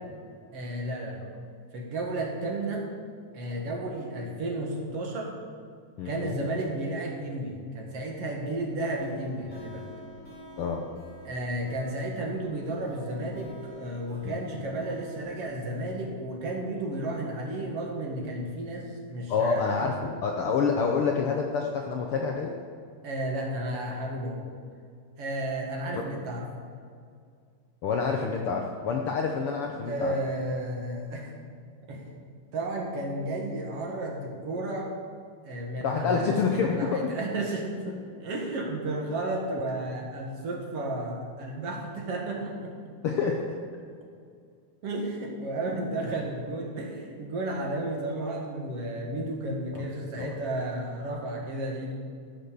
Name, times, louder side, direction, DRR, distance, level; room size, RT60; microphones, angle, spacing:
voice 1, 0.5-1.2 1.7-2.9 3.3-5.3 6.0-9.8 11.2-19.9 23.0-24.5 25.2-26.5 29.8-31.3 31.9-32.1 32.5-34.9 35.4-36.4 36.7-42.7 44.8-51.9, right 1 dB, 50° right, 0 dB, 2.5 m, -33 dB
voice 2, 6.0-6.4 10.6-10.8 14.2-14.4 19.3-22.5 27.8-30.1 35.8-37.1 43.0-43.6 49.7-49.8 50.2-50.3, left 5 dB, 85° left, 1 dB, 1.2 m, -27 dB
sound 1, 8.5-16.1, left 1 dB, 30° left, 3.0 m, -48 dB
16.0 x 6.1 x 6.9 m, 2.2 s
omnidirectional pair, 3.7 m